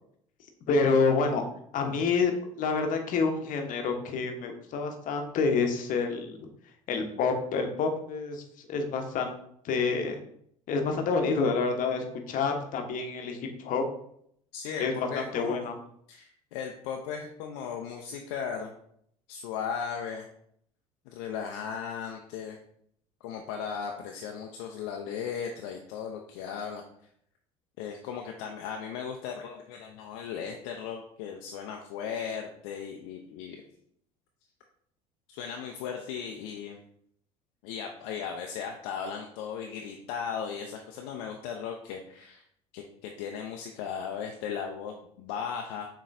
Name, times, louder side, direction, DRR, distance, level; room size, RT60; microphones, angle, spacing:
voice 1, 0.7-1.4 1.7-2.3 2.6-6.4 6.9-8.4 8.7-9.3 9.6-10.2 10.7-13.8 14.8-14.9 15.3-15.8, left 4 dB, 50° left, 4 dB, 0.9 m, -28 dB
voice 2, 14.5-15.7 16.1-18.7 19.3-20.3 21.1-22.6 23.2-26.8 27.8-33.6 35.3-36.8 37.6-42.4 42.7-45.9, left 7 dB, 65° left, 2 dB, 0.5 m, -37 dB
6.7 x 3.0 x 2.5 m, 0.69 s
figure-of-eight pair, 60°, 17 cm